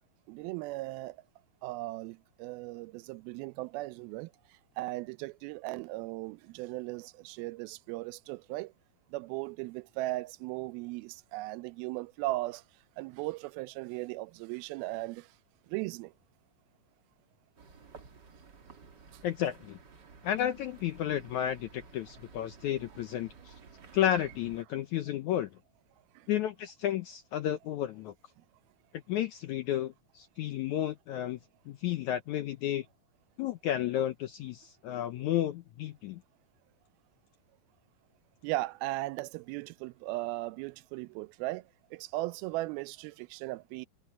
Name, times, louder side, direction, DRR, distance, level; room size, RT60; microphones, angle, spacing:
voice 1, 0.3-1.2 1.6-4.3 4.8-8.7 9.1-12.6 13.0-15.3 15.7-16.1 26.2-26.3 38.4-41.6 41.9-43.9, right 19 dB, 85° right, 2.4 m, -37 dB
sound 1, 17.6-24.6, right 5 dB, 40° right, 1.8 m, -54 dB
voice 2, 19.2-19.8 20.2-23.5 23.9-25.5 26.3-28.1 29.1-31.4 31.7-32.9 33.4-36.2, left 11 dB, 80° left, 1.7 m, -32 dB
omnidirectional pair, 4.3 m